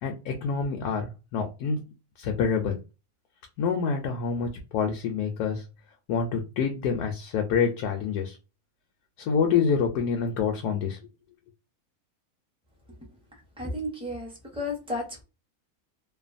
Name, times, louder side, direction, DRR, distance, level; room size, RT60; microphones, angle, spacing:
voice 1, 0.0-1.8 2.2-2.8 3.6-5.6 6.1-8.4 9.2-11.0, left 6 dB, 85° left, 3 dB, 1.1 m, -27 dB
voice 2, 13.6-15.2, left 1 dB, 5° right, -1 dB, 0.4 m, -33 dB
2.8 x 2.2 x 2.5 m, 0.28 s
omnidirectional pair, 1.6 m